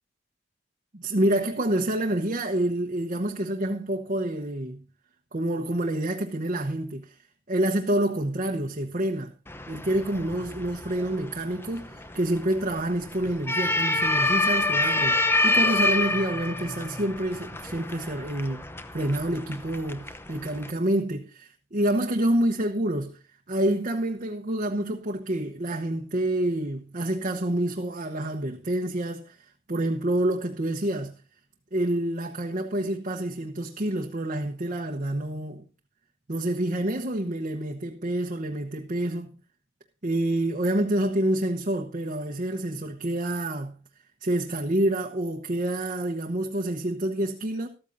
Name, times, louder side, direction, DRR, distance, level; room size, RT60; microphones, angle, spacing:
voice 1, 0.9-4.8 5.3-7.1 7.5-9.3 9.7-18.7 18.9-23.2 23.5-31.2 31.7-35.7 36.3-39.4 40.0-43.8 44.2-47.7, right 1 dB, 45° right, 1.0 m, -28 dB
sound 1, 9.5-20.7, left 2 dB, 15° left, 0.8 m, -28 dB
13.5 x 13.5 x 2.7 m
head